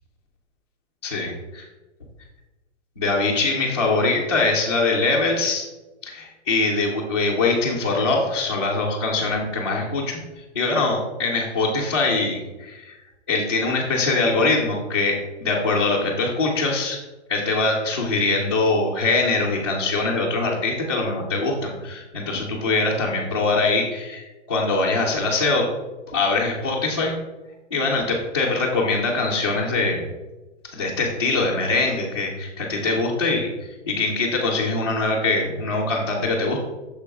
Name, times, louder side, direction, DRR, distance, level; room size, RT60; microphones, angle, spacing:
voice 1, 1.0-1.7 3.0-5.6 6.0-10.2 10.5-13.0 13.3-17.0 17.3-25.7 26.1-27.1 27.7-30.0 30.6-33.5 33.9-36.6, left 3 dB, 20° left, -7 dB, 0.4 m, -23 dB
6.6 x 4.9 x 3.4 m, 1.1 s
hypercardioid pair, 180°, 36 cm